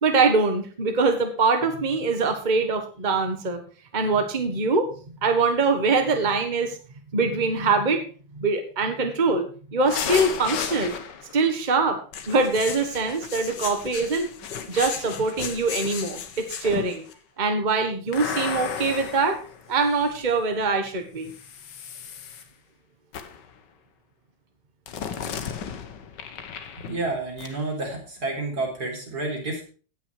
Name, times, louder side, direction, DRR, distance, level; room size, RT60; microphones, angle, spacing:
voice 1, 0.0-3.6 3.9-6.8 7.1-8.0 8.3-11.0 11.3-12.0 12.3-14.3 14.7-17.0 17.4-19.4 19.7-21.3, right 3 dB, 25° right, 6 dB, 1.6 m, -23 dB
sound 1, 9.9-11.4 12.1-17.1 18.1-20.3 21.3-22.4 23.1-23.5 24.9-27.1 27.4-27.5, left 7 dB, 70° left, 1.7 m, -34 dB
voice 2, 26.8-29.6, right 2 dB, 55° right, 0 dB, 4.5 m, -30 dB
17.0 x 6.1 x 4.9 m, 0.38 s
omnidirectional pair, 2.0 m